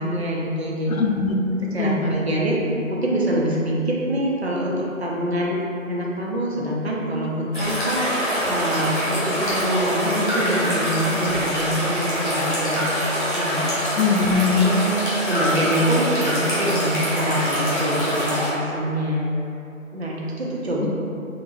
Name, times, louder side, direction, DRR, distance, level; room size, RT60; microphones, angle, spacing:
voice 1, 0.0-0.9 1.7-2.6 2.9-5.6 5.9-12.9 13.3-13.6 14.5-19.3 19.9-20.9, right 1 dB, 50° right, -4 dB, 0.5 m, -25 dB
voice 2, 0.9-1.4 1.8-2.1 14.0-14.7 20.8-20.9, left 5 dB, 75° left, 2 dB, 0.5 m, -21 dB
sound 1, 7.5-18.5, equal, 35° left, 0.9 m, -24 dB
2.9 x 2.5 x 2.8 m, 2.7 s
figure-of-eight pair, 160°, 42 cm